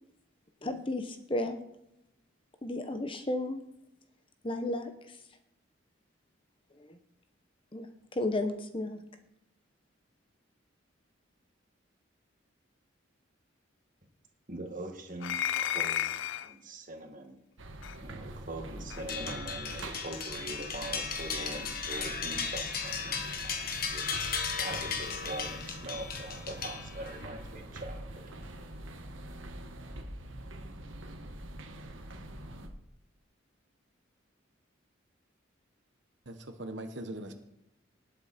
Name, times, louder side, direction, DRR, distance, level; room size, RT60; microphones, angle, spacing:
voice 1, 0.6-1.6 2.6-3.6 4.4-5.4 6.7-7.0 7.7-9.0, left 1 dB, 25° left, 8 dB, 1.0 m, -34 dB
voice 2, 14.5-16.1 16.4-17.4 18.0-24.3 24.5-28.3, right 1 dB, 40° right, 3 dB, 2.0 m, -43 dB
sound 1, 15.2-16.5 17.8-18.0 18.9-19.1, left 10 dB, 70° left, 0.4 m, -32 dB
sound 2, 17.6-32.7, right 1 dB, 85° right, 1.6 m, -44 dB
sound 3, 19.1-27.3, left 6 dB, 50° left, 1.5 m, -36 dB
voice 3, 36.3-37.3, right 1 dB, 65° right, 7 dB, 1.3 m, -40 dB
19.0 x 7.9 x 4.3 m, 0.83 s
head